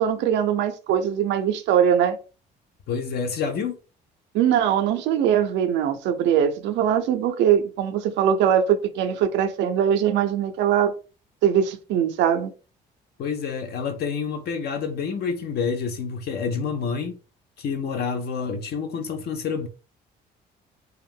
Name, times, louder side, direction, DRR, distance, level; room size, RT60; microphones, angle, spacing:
voice 1, 0.0-2.2 4.3-10.9 11.4-12.5, right 9 dB, 85° right, 0.5 m, -21 dB
voice 2, 2.9-3.8 13.2-17.2 17.6-19.7, left 5 dB, 60° left, 0.5 m, -28 dB
2.2 x 2.0 x 3.4 m
cardioid pair, 80°, 18 cm